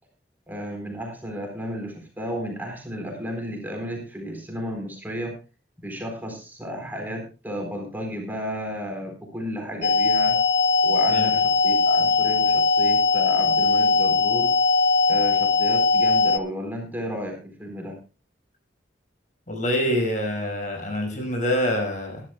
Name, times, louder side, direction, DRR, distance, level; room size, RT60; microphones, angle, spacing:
voice 1, 0.5-5.4 5.8-10.4 10.8-14.5 15.1-18.0, equal, 10° right, 2 dB, 4.1 m, -33 dB
sound 1, 9.8-16.4, left 3 dB, 65° left, 0.8 m, -20 dB
voice 2, 19.5-22.2, equal, 45° left, 3 dB, 5.4 m, -25 dB
22.5 x 12.0 x 2.3 m, 0.32 s
head